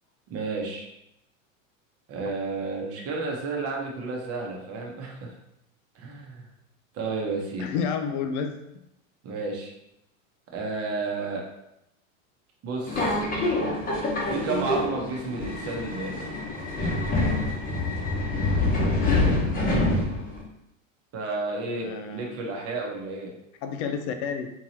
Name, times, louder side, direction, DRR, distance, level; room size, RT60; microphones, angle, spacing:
voice 1, 0.3-0.9 2.1-5.3 5.9-6.5 6.9-7.7 9.2-9.7 10.5-11.4 12.6-13.2 14.3-16.4 21.1-23.3, right 3 dB, 35° right, 0 dB, 0.9 m, -32 dB
voice 2, 7.6-8.5 21.8-22.3 23.6-24.5, left 6 dB, 55° left, 6 dB, 0.5 m, -30 dB
Subway metro underground, 12.9-20.4, left 2 dB, 20° left, 0.9 m, -26 dB
3.7 x 2.9 x 2.8 m, 0.83 s
supercardioid pair, 120°, 40 cm